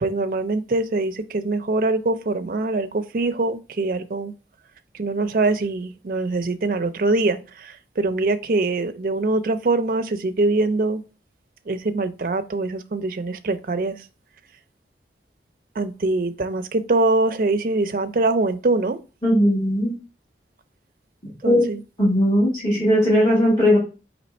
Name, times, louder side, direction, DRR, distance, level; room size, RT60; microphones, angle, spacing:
voice 1, 0.0-4.3 4.9-11.0 11.7-14.0 15.8-19.0 21.4-21.8, right 2 dB, 50° right, 9 dB, 0.4 m, -23 dB
voice 2, 19.2-19.9 21.4-21.6 22.0-23.8, equal, 20° left, -7 dB, 1.5 m, -18 dB
4.2 x 2.9 x 4.1 m, 0.33 s
head